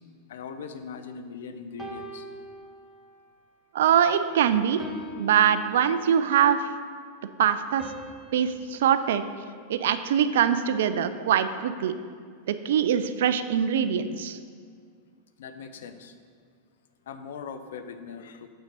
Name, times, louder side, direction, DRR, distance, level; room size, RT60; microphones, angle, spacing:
voice 1, 0.3-2.3 15.4-16.1 17.1-18.5, left 6 dB, 60° left, 8 dB, 0.5 m, -40 dB
sound 1, 1.8-3.3 3.8-4.1 4.8-6.5 7.8-10.2, right 1 dB, 10° right, 1.0 m, -44 dB
voice 2, 3.7-4.8 5.2-6.6 7.4-7.8 8.3-9.2 9.7-11.9 12.5-14.4, right 9 dB, 60° right, 11 dB, 0.3 m, -23 dB
7.2 x 5.8 x 4.1 m, 2.1 s
figure-of-eight pair, 90°, 0 cm